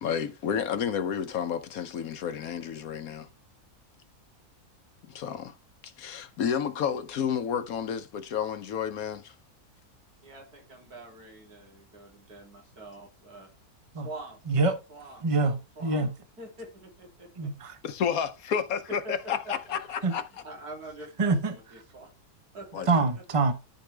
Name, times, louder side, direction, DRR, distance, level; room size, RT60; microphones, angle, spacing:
voice 1, 0.0-3.3 5.0-5.6 5.8-9.3 17.8-20.2 22.7-22.9, left 7 dB, 70° left, 1.2 m, -31 dB
voice 2, 10.2-13.5 14.0-14.4 14.9-15.3 15.7-16.1 16.4-17.5 19.0-19.1 19.4-19.8 20.4-22.1 22.5-22.9, right 2 dB, 80° right, 3.5 m, -45 dB
voice 3, 14.5-14.8 15.2-16.1 17.4-17.8 20.0-20.2 21.2-21.6 22.9-23.5, right 3 dB, 25° right, 1.0 m, -25 dB
13.0 x 4.7 x 3.3 m
omnidirectional pair, 1.6 m